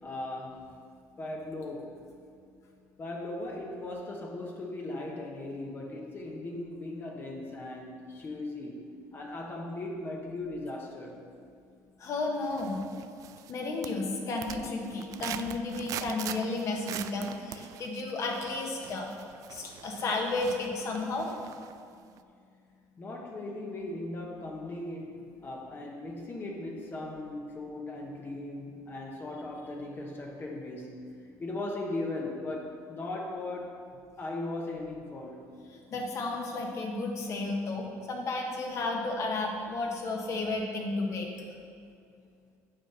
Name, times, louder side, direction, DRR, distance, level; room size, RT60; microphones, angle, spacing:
voice 1, 0.0-0.7 1.2-2.0 3.0-11.3 23.0-31.0 31.4-33.9 34.2-35.5, left 2 dB, 30° left, 0 dB, 1.0 m, -38 dB
voice 2, 12.0-12.9 13.5-19.1 19.5-21.3 35.9-41.3, left 2 dB, 50° left, 1 dB, 1.4 m, -32 dB
sound 1, 12.4-13.6 13.8-21.8 22.2-22.3, right 11 dB, 60° right, 0.3 m, -43 dB
8.8 x 4.4 x 6.6 m, 2.3 s
cardioid pair, 120°, 7 cm